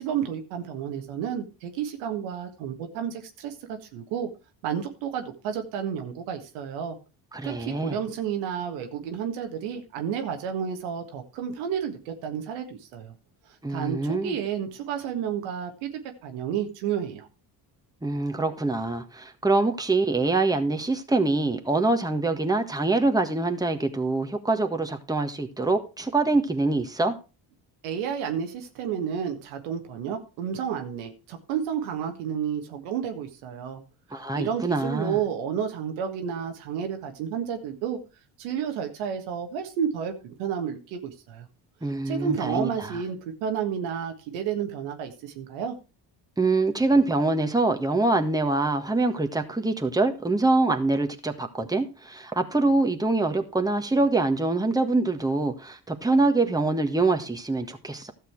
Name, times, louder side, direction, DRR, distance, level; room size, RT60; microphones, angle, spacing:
voice 1, 0.0-4.3 4.6-7.0 7.4-13.1 13.7-17.3 27.8-33.8 34.3-38.0 38.4-41.5 42.1-45.8, right 8 dB, 90° right, 1.7 m, -31 dB
voice 2, 7.3-8.0 13.6-14.3 18.0-27.2 34.1-35.2 41.8-42.9 46.4-58.1, right 2 dB, 10° right, 1.7 m, -24 dB
12.5 x 6.8 x 4.7 m
supercardioid pair, 65°, 46 cm